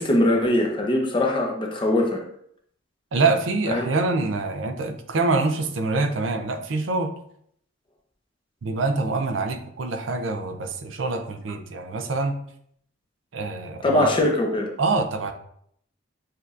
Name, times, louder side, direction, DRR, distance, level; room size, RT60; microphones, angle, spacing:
voice 1, 0.0-2.2 3.7-3.9 13.8-14.7, left 1 dB, 25° left, 1 dB, 0.7 m, -21 dB
voice 2, 3.1-7.1 8.6-12.4 13.3-14.1 14.8-15.3, right 3 dB, 75° right, 6 dB, 0.5 m, -25 dB
6.5 x 2.7 x 2.4 m, 0.67 s
head